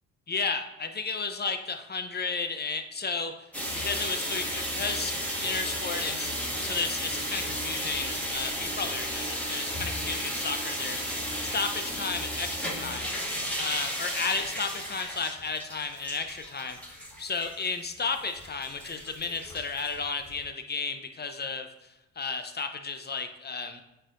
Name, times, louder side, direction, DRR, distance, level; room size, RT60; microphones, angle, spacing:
voice 1, 0.3-3.3 3.7-11.0 11.4-13.1 13.6-21.7 22.2-23.8, left 4 dB, 25° left, 7 dB, 0.8 m, -33 dB
sound 1, 3.5-20.4, equal, 5° left, 2.1 m, -34 dB
8.8 x 4.6 x 2.6 m, 0.96 s
hypercardioid pair, 50°, 40 cm